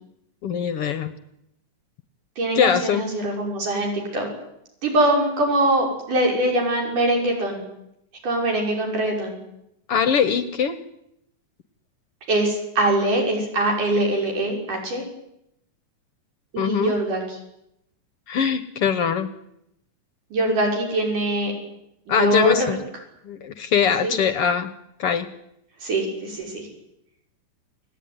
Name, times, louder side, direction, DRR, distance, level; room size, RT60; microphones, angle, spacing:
voice 1, 0.4-1.1 2.5-3.1 9.9-10.8 16.6-16.9 18.3-19.3 22.1-22.8 23.2-24.7 25.0-25.3, left 7 dB, 60° left, 12 dB, 1.6 m, -22 dB
voice 2, 2.4-4.3 4.8-7.6 8.2-9.4 12.3-15.0 16.5-17.4 20.3-21.5 22.1-22.7 24.0-24.1 25.8-26.7, right 1 dB, 70° right, 0 dB, 7.1 m, -23 dB
29.5 x 18.0 x 9.6 m, 0.81 s
omnidirectional pair, 3.8 m